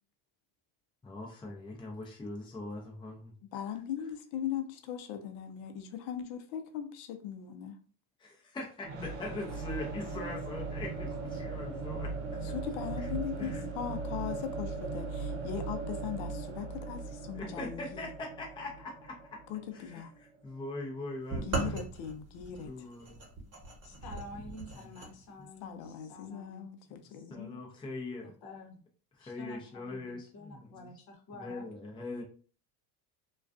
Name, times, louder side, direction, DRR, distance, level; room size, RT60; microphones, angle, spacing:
voice 1, 1.0-3.3 8.2-12.5 13.0-13.1 13.4-13.6 17.3-19.4 19.7-21.8 22.6-23.2 24.7-24.9 25.4-25.5 27.1-28.3 29.2-30.9 31.3-32.2, left 2 dB, 10° left, -1 dB, 0.5 m, -42 dB
voice 2, 3.5-7.8 12.4-18.1 19.5-20.1 21.3-22.9 25.6-27.6, left 9 dB, 70° left, 7 dB, 0.6 m, -39 dB
sound 1, 8.8-20.6, right 3 dB, 65° right, 0.8 m, -39 dB
sound 2, 21.3-25.1, right 3 dB, 35° right, 1.1 m, -38 dB
voice 3, 23.8-26.7 28.2-28.8 29.2-31.7, left 1 dB, 50° left, 4 dB, 0.9 m, -49 dB
2.3 x 2.3 x 2.4 m, 0.40 s
supercardioid pair, 95°, 46 cm